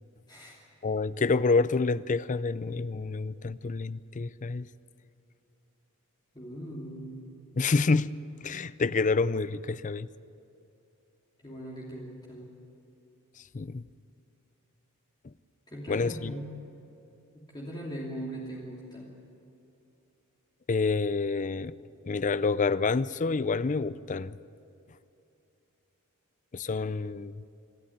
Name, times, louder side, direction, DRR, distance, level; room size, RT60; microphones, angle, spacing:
voice 1, 0.8-4.7 7.6-8.1 8.4-10.1 13.5-13.8 15.9-16.3 20.7-21.7 22.1-24.3 26.5-27.4, left 4 dB, 35° left, 0.5 m, -28 dB
voice 2, 6.3-7.3 11.4-12.5 15.7-16.5 17.3-19.1, equal, 20° left, 2.9 m, -40 dB
26.0 x 13.0 x 9.3 m
head